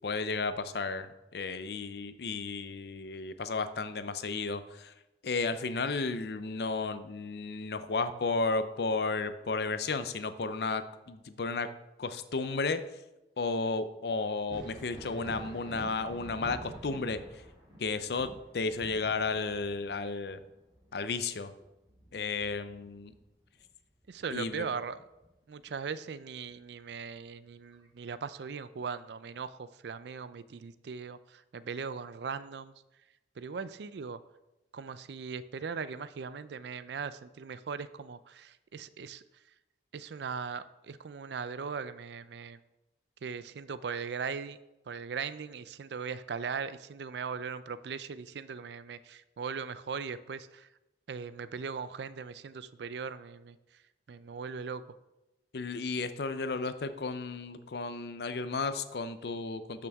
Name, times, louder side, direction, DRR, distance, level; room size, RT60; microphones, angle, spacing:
voice 1, 0.0-4.9 5.2-11.7 12.0-12.8 13.4-17.4 17.8-20.4 20.9-21.5 22.1-23.1 24.3-24.7 55.5-59.9, left 4 dB, 65° left, 11 dB, 0.6 m, -33 dB
Thunder, 14.3-23.7 24.0-25.3 26.8-26.9 27.7-27.9, equal, 25° right, 2.1 m, -49 dB
voice 2, 24.1-25.0 25.5-32.7 33.4-34.2 34.7-39.2 39.9-42.6 43.2-44.6 44.9-50.7 51.1-53.6 54.1-54.8, right 5 dB, 70° right, 15 dB, 0.4 m, -39 dB
12.5 x 5.9 x 3.5 m, 0.98 s
head